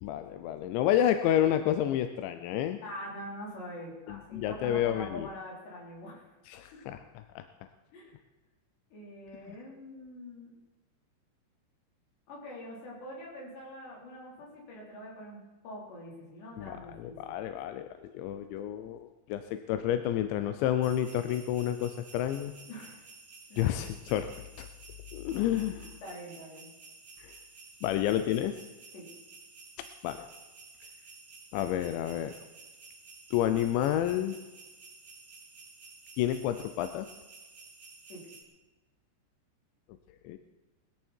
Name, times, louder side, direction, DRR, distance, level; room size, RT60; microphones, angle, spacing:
voice 1, 0.0-2.8 4.1-5.3 6.5-7.0 7.4-7.5 9.5-9.6 16.6-22.5 23.6-24.7 25.1-25.9 27.2-27.3 27.8-28.6 29.8-30.3 31.5-32.3 33.3-34.4 36.2-37.1 40.2-40.4, left 11 dB, 80° left, 9 dB, 2.8 m, -30 dB
voice 2, 2.8-6.3 6.7-6.8 7.9-8.1 8.9-10.5 12.3-17.3 22.7-23.0 23.5-23.7 25.7-26.7 27.9-28.0 28.9-29.1 38.1-38.2, equal, 65° left, -4 dB, 6.5 m, -44 dB
sound 1, 20.8-38.4, right 4 dB, 45° right, 3.5 m, -52 dB
20.5 x 13.5 x 4.5 m, 1.2 s
omnidirectional pair, 5.5 m